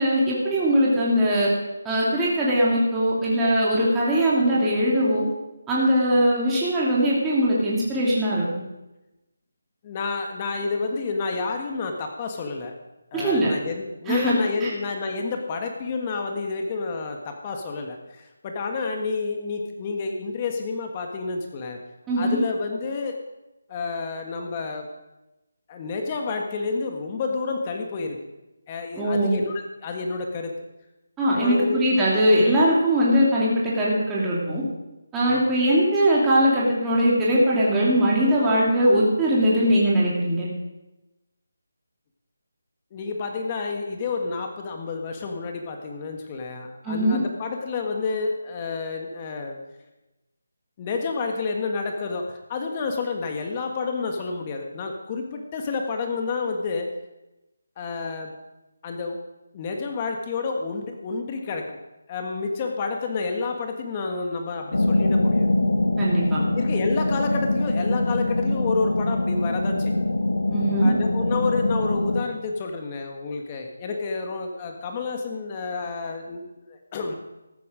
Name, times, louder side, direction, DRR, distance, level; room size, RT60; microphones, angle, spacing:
voice 1, 0.0-1.5 1.8-5.3 5.7-8.4 13.1-13.5 14.1-14.3 14.6-14.7 22.1-22.4 29.0-29.4 31.2-34.6 35.1-40.5 46.8-47.2 66.0-66.4 70.5-70.9, equal, 10° right, -7 dB, 2.8 m, -21 dB
voice 2, 9.8-12.7 13.1-21.8 22.2-23.2 23.7-24.9 25.7-28.2 28.7-30.5 31.4-32.0 35.2-35.5 42.9-49.6 50.8-56.9 57.8-58.3 58.8-59.2 59.5-61.8 62.1-65.5 66.5-69.9 70.8-77.1, left 4 dB, 25° left, 3 dB, 1.6 m, -29 dB
sound 1, 64.7-72.2, left 2 dB, 80° left, 1.9 m, -23 dB
14.0 x 11.5 x 5.1 m, 1.0 s
figure-of-eight pair, 160°, 0 cm